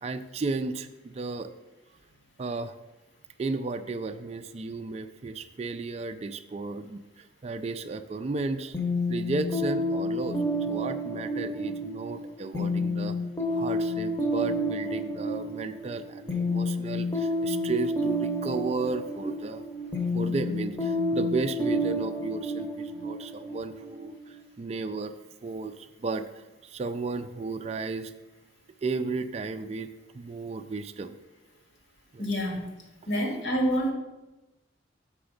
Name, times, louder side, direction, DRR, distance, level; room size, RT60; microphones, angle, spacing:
voice 1, 0.0-1.5 2.4-2.8 3.4-8.8 9.1-13.2 13.5-19.6 20.0-25.1 25.4-28.1 28.8-29.9 30.1-31.2 32.1-32.3, right 3 dB, 35° right, 8 dB, 0.3 m, -34 dB
sound 1, 8.7-24.3, left 1 dB, 15° left, 0.8 m, -30 dB
voice 2, 32.2-32.7 33.1-33.9, equal, 70° left, 1 dB, 1.6 m, -27 dB
6.9 x 4.8 x 5.1 m, 1.0 s
head